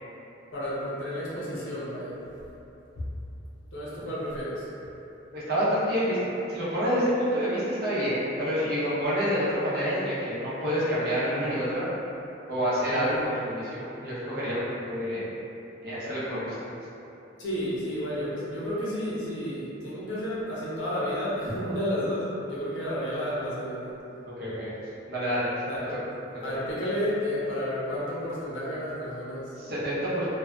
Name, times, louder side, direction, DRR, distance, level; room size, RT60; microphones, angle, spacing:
voice 1, 0.5-2.1 3.7-4.7 12.9-13.1 17.4-23.9 25.7-25.9 26.4-29.5, equal, 75° left, -8 dB, 0.7 m, -31 dB
voice 2, 5.3-6.2 6.5-11.8 12.5-15.2 15.8-16.5 24.4-24.7 25.1-25.5 25.9-26.0 29.6-30.2, equal, 50° right, -10 dB, 0.7 m, -28 dB
2.6 x 2.3 x 2.2 m, 2.9 s
head